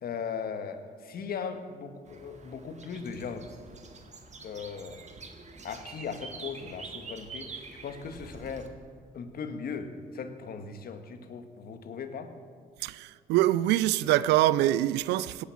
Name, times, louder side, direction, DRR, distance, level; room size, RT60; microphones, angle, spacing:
voice 1, 0.0-3.5 4.4-5.0 5.6-8.7 9.1-12.3, left 6 dB, 60° left, 1.7 m, -38 dB
sound 1, 2.1-8.7, right 4 dB, 40° right, 2.0 m, -46 dB
voice 2, 12.8-15.4, right 14 dB, 80° right, 0.5 m, -24 dB
18.0 x 10.0 x 7.3 m
supercardioid pair, 60°, 17 cm